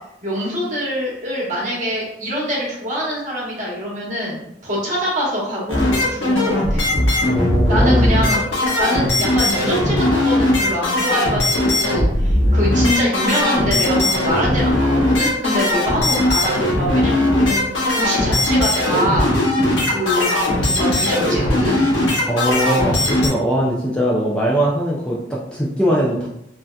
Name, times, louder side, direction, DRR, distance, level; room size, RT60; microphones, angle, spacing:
voice 1, 0.2-5.9 6.2-6.8 7.7-8.4 8.8-17.6 17.9-19.3 19.8-21.9, equal, 40° right, -4 dB, 1.1 m, -24 dB
sound 1, 5.7-23.3, left 1 dB, 90° left, 1.1 m, -18 dB
voice 2, 7.3-8.1 22.3-26.3, equal, 5° left, -5 dB, 0.4 m, -20 dB
3.3 x 2.7 x 2.3 m, 0.78 s
head